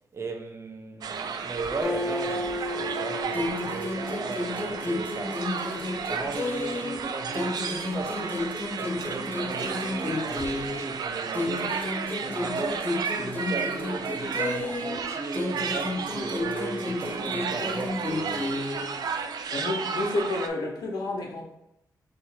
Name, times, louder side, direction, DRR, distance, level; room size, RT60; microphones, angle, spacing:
voice 1, 0.1-8.5 8.8-11.8 12.2-18.6, right 3 dB, 40° right, 0.7 m, -37 dB
sound 1, 1.0-20.5, right 6 dB, 75° right, 0.4 m, -33 dB
Acoustic guitar, 1.8-5.4, left 2 dB, 5° right, 0.8 m, -34 dB
sound 2, 3.3-7.0 7.3-11.0 11.3-15.0 15.3-19.0, left 2 dB, 30° left, 0.6 m, -32 dB
voice 2, 19.5-21.4, left 2 dB, 85° left, 1.0 m, -30 dB
4.1 x 3.2 x 3.5 m
cardioid pair, 85°, 7 cm